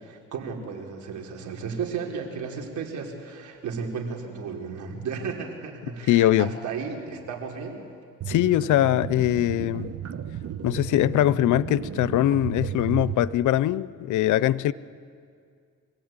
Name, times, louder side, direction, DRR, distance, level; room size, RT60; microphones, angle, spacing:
voice 1, 0.0-7.8, right 5 dB, 75° right, 1 dB, 4.0 m, -34 dB
voice 2, 6.1-6.5 8.3-9.9 10.6-14.7, left 13 dB, 80° left, 18 dB, 0.7 m, -22 dB
sound 1, 8.2-13.3, right 9 dB, 55° right, 1.3 m, -34 dB
26.0 x 17.5 x 8.9 m, 2.2 s
cardioid pair, 90°, 30 cm